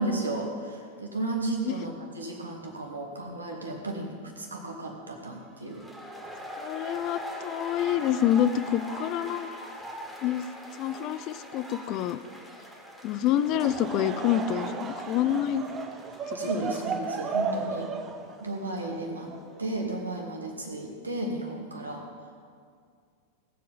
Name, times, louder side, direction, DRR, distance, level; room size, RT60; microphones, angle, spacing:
voice 1, 0.0-5.8 16.3-17.9 18.4-19.3 19.6-22.0, right 2 dB, 75° right, 1 dB, 2.1 m, -33 dB
sound 1, 5.6-17.3, equal, 5° right, 2.3 m, -42 dB
voice 2, 6.6-9.5 10.2-10.5 10.8-12.2 13.0-15.6 16.3-16.7, left 11 dB, 40° left, 13 dB, 0.5 m, -27 dB
Laughter / Crowd, 13.4-19.8, right 5 dB, 25° right, 1.1 m, -34 dB
18.5 x 7.6 x 5.5 m, 2.1 s
figure-of-eight pair, 90°, 0 cm